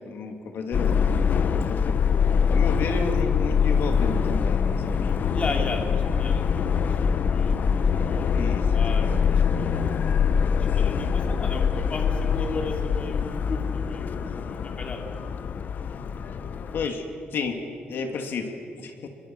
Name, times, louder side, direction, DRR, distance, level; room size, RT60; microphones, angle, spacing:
voice 1, 0.0-1.0 1.7-2.0 2.5-5.1 8.3-9.8 16.7-17.0 17.3-17.6 17.9-18.5 18.8-19.1, left 5 dB, 70° left, 4 dB, 2.9 m, -32 dB
Subway metro underground, 0.7-16.9, left 6 dB, 50° left, 0.9 m, -24 dB
voice 2, 5.3-6.6 7.0-8.4 8.7-9.1 9.5-10.0 10.6-15.0, left 3 dB, 35° left, 3 dB, 2.8 m, -35 dB
29.5 x 22.5 x 8.1 m, 2.5 s
wide cardioid pair, 145°, 4 cm